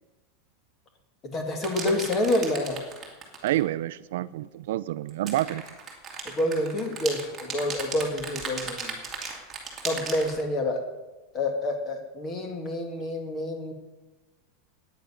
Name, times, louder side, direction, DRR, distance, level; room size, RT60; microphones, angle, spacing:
voice 1, 1.3-2.8 6.3-9.0 9.8-10.8 11.3-13.7, left 1 dB, 20° left, 5 dB, 1.8 m, -28 dB
sound 1, 1.6-3.6 5.1-10.4, right 5 dB, 10° right, 2.3 m, -36 dB
voice 2, 3.4-5.6, right 14 dB, 65° right, 15 dB, 0.5 m, -28 dB
10.5 x 9.3 x 9.8 m, 1.2 s
supercardioid pair, 180°, 0 cm